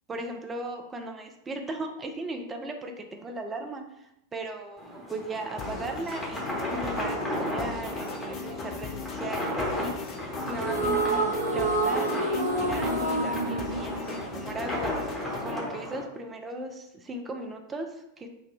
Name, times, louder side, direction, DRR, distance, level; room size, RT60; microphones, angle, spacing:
voice 1, 0.1-9.9 10.4-15.0 15.4-18.3, right 2 dB, 15° right, 4 dB, 0.5 m, -37 dB
sound 1, 4.8-16.0, equal, 15° left, 1.1 m, -34 dB
sound 2, 5.6-15.6, left 6 dB, 30° left, 0.5 m, -39 dB
sound 3, 10.5-15.0, right 2 dB, 75° right, 0.5 m, -28 dB
3.9 x 2.2 x 4.4 m, 0.83 s
figure-of-eight pair, 90°, 0 cm